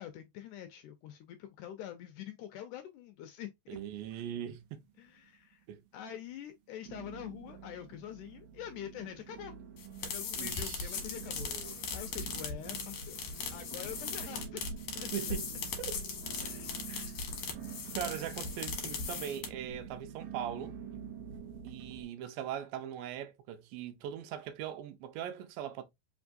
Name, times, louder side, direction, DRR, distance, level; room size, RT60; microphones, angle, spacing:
voice 1, 0.0-3.8 5.0-5.6 5.9-9.6 10.0-11.5 11.9-13.2 13.5-14.6 15.0-15.1 16.4-16.8, left 10 dB, 80° left, 1.9 m, -45 dB
sound 1, 3.7-4.6 4.9-5.5 6.0-6.1 6.9-22.0, right 8 dB, 75° right, 1.8 m, -47 dB
voice 2, 3.7-4.8 5.7-5.8 10.4-11.0 11.4-11.8 15.1-16.0 16.9-17.1 18.0-20.7 21.6-25.8, right 10 dB, 90° right, 2.5 m, -40 dB
sound 2, 9.8-19.7, left 5 dB, 65° left, 2.0 m, -39 dB
5.2 x 3.5 x 2.5 m
omnidirectional pair, 4.0 m